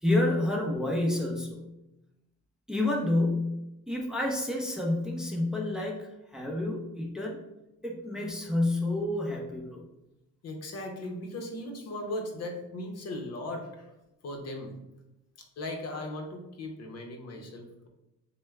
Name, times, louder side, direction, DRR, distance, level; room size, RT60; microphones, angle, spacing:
voice 1, 0.0-1.7 2.7-3.6 3.9-6.1 6.3-7.4 7.8-9.9, left 1 dB, ahead, -2 dB, 0.7 m, -29 dB
voice 2, 10.4-13.9 14.2-14.7 15.4-17.9, left 1 dB, 55° left, 2 dB, 0.8 m, -38 dB
6.1 x 2.2 x 2.3 m, 0.93 s
cardioid pair, 90°, 30 cm